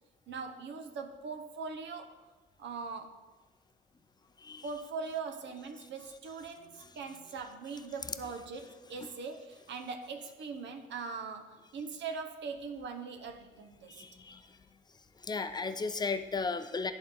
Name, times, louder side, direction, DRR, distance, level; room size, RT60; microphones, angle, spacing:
voice 1, 0.3-2.1 2.6-3.2 4.6-14.0, right 5 dB, 65° right, 6 dB, 0.8 m, -41 dB
voice 2, 13.9-14.4 15.2-16.9, left 4 dB, 20° left, 9 dB, 0.5 m, -35 dB
11.0 x 3.9 x 4.0 m, 1.2 s
cardioid pair, 90°, 20 cm